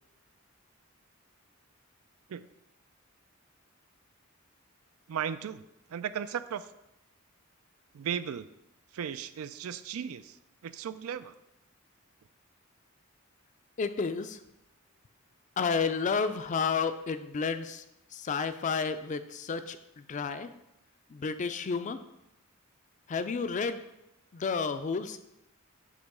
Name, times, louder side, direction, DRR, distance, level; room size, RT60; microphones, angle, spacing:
voice 1, 5.1-5.6 5.9-6.6 7.9-8.5 8.9-10.4 10.6-11.3, right 8 dB, 90° right, 13 dB, 0.4 m, -36 dB
voice 2, 13.8-14.4 15.6-17.8 18.1-20.5 21.1-22.0 23.1-23.8 24.3-25.2, left 5 dB, 35° left, 10 dB, 0.4 m, -31 dB
8.0 x 2.9 x 5.4 m, 0.86 s
head